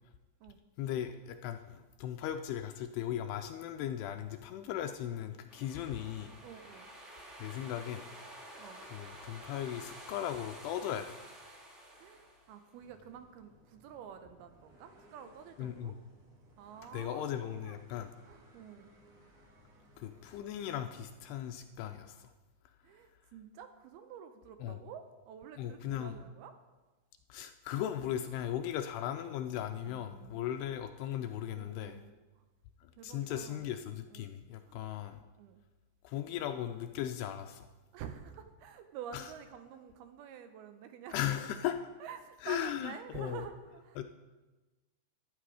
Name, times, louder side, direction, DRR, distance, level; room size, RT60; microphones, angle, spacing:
voice 1, 0.8-6.3 7.4-8.1 8.9-11.2 15.6-16.0 16.9-18.1 20.0-22.3 24.6-24.8 25.6-26.2 27.3-32.0 32.8-35.2 36.0-37.7 39.1-39.3 41.1-41.9 42.4-43.4 44.0-44.1, left 10 dB, 80° left, 7 dB, 2.5 m, -37 dB
sound 1, 5.5-12.8, right 1 dB, 20° right, 2.3 m, -51 dB
voice 2, 6.4-6.9 8.6-8.8 12.0-15.9 16.6-17.8 18.2-18.9 22.8-26.6 28.7-28.9 29.8-30.4 31.5-32.4 32.9-33.7 34.1-34.3 34.6-34.8 35.4-35.6 37.9-41.3 42.0-44.0, right 8 dB, 80° right, 8 dB, 2.4 m, -49 dB
sound 2, 12.7-21.6, equal, 45° right, 3.0 m, -62 dB
14.0 x 11.0 x 4.9 m, 1.2 s
omnidirectional pair, 5.0 m